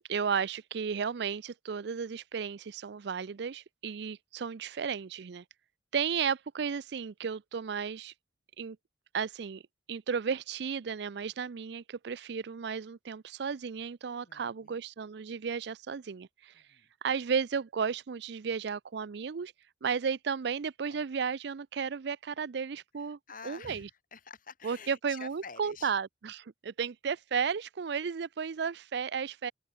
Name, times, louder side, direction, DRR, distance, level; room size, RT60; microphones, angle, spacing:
voice 1, 0.0-5.4 5.9-8.1 8.6-8.8 9.1-9.6 9.9-16.5 17.0-19.5 19.8-23.2 23.4-23.9 24.6-29.5, right 6 dB, 65° right, 0.5 m, -34 dB
voice 2, 14.0-14.8 16.5-16.9 23.0-25.9, left 5 dB, 50° left, 7.0 m, -49 dB
open air
head